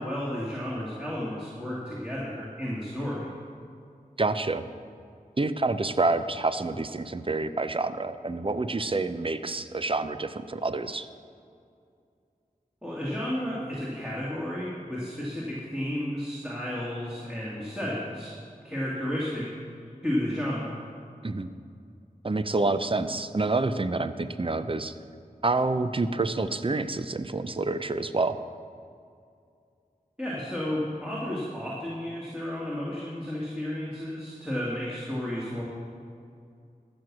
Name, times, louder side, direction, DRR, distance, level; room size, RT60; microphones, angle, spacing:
voice 1, 0.0-3.3 12.8-18.3 18.6-19.5 20.0-20.8 30.2-35.6, left 1 dB, 5° right, -7 dB, 2.4 m, -32 dB
voice 2, 4.2-4.7 5.4-11.1 21.2-21.5 22.2-24.9 25.4-28.4, right 3 dB, 35° right, 11 dB, 0.6 m, -28 dB
14.5 x 6.2 x 6.2 m, 2.4 s
wide cardioid pair, 40°, 15 cm